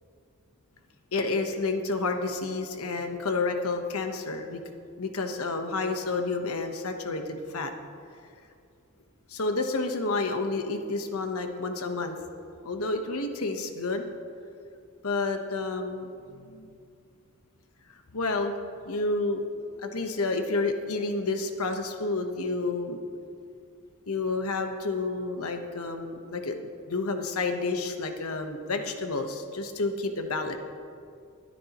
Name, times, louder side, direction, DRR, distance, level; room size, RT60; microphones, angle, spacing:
voice 1, 1.1-4.6 5.0-7.7 9.3-12.2 12.6-14.1 15.0-16.7 18.1-18.5 18.9-19.4 19.7-23.0 24.1-30.6, left 3 dB, 85° left, 5 dB, 1.1 m, -30 dB
20.5 x 9.7 x 3.0 m, 2.4 s
head